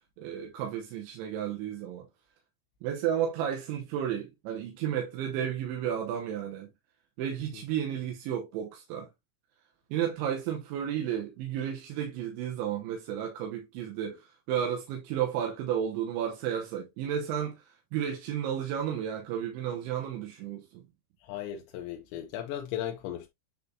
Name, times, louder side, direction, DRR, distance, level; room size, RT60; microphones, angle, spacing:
voice 1, 0.2-2.1 2.8-6.7 7.2-9.1 9.9-20.8, right 9 dB, 75° right, 3.0 m, -32 dB
voice 2, 21.2-23.3, left 11 dB, 80° left, 2.7 m, -36 dB
9.5 x 3.8 x 2.7 m
omnidirectional pair, 6.0 m